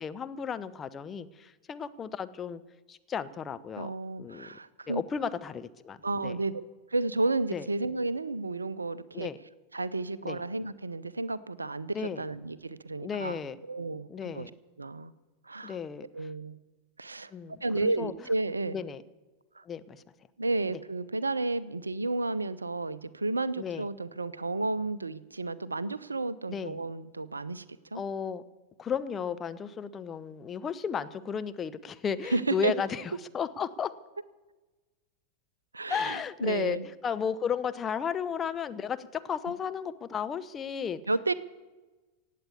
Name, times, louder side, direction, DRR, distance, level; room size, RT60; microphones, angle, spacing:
voice 1, 0.0-2.6 2.9-3.9 4.2-4.5 4.9-6.0 6.2-6.4 7.5-7.7 9.1-9.4 10.2-10.4 11.9-12.2 13.0-13.6 14.1-14.5 15.6-16.3 17.3-18.1 18.7-19.0 19.7-20.0 23.6-23.9 26.5-26.8 27.9-28.4 28.8-33.0 33.3-33.9 35.9-36.8 37.0-41.0, left 7 dB, 20° left, 12 dB, 0.7 m, -34 dB
voice 2, 3.8-5.0 6.0-6.6 6.9-9.3 9.7-14.5 14.8-15.1 15.4-15.8 16.1-16.6 17.0-18.8 19.6-19.7 20.4-27.6 27.9-28.0 32.3-32.7 35.7-36.9 41.1-41.3, right 2 dB, 80° right, 18 dB, 0.6 m, -32 dB
17.0 x 8.5 x 8.3 m, 1.2 s
figure-of-eight pair, 90°, 0 cm